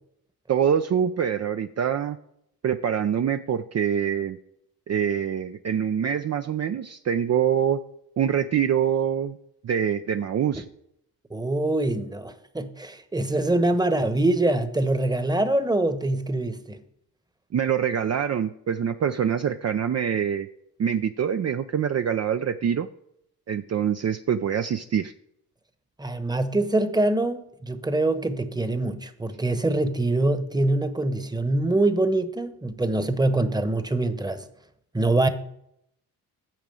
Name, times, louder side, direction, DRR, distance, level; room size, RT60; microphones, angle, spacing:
voice 1, 0.5-2.2 2.6-4.4 4.9-7.8 8.2-9.4 9.6-10.6 17.5-20.5 20.8-22.9 23.5-25.1, right 8 dB, 40° right, 0.5 m, -25 dB
voice 2, 11.3-16.8 26.0-34.5 34.9-35.3, right 2 dB, 10° right, 1.1 m, -24 dB
9.0 x 4.9 x 7.7 m
supercardioid pair, 55°, 39 cm